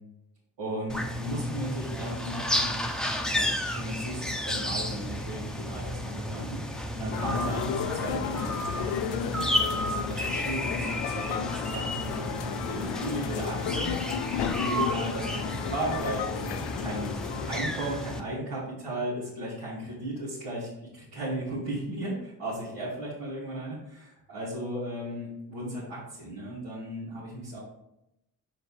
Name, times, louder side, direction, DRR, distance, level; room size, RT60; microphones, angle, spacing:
voice 1, 0.6-2.7 3.2-16.5 16.8-17.1 17.5-27.6, right 1 dB, 80° right, -10 dB, 2.3 m, -36 dB
sound 1, 0.9-18.2, equal, ahead, 0.8 m, -32 dB
sound 2, 7.1-17.6, left 8 dB, 90° left, 0.5 m, -33 dB
6.6 x 5.0 x 3.2 m, 0.84 s
supercardioid pair, 50°, 42 cm